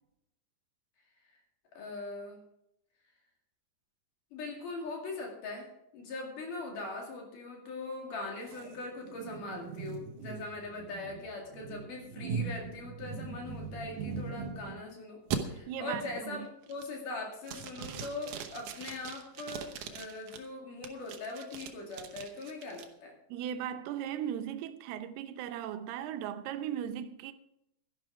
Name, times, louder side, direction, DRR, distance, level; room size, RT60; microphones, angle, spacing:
voice 1, 1.7-2.4 4.3-15.2 15.5-23.1, left 3 dB, 60° left, 3.7 m, -41 dB
sound 1, 8.5-14.8 15.3-15.4 15.9-16.3 16.7-17.1 17.4-20.4 20.8-22.8, right 6 dB, 70° right, 2.0 m, -40 dB
voice 2, 15.7-16.5 23.3-27.3, right 10 dB, 90° right, 2.8 m, -37 dB
12.5 x 11.5 x 4.7 m
omnidirectional pair, 4.5 m